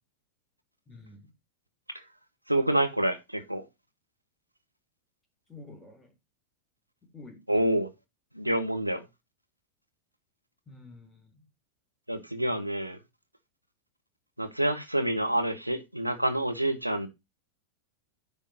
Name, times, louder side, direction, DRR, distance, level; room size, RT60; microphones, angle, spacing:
voice 1, 0.9-1.3 5.5-6.1 7.0-7.8 10.7-11.4, left 2 dB, 10° left, 3.8 m, -49 dB
voice 2, 2.5-3.6 7.5-7.9 8.3-9.0 12.1-13.0 14.4-17.1, right 1 dB, 90° right, 1.2 m, -27 dB
9.8 x 3.6 x 6.4 m
figure-of-eight pair, 90°, 0 cm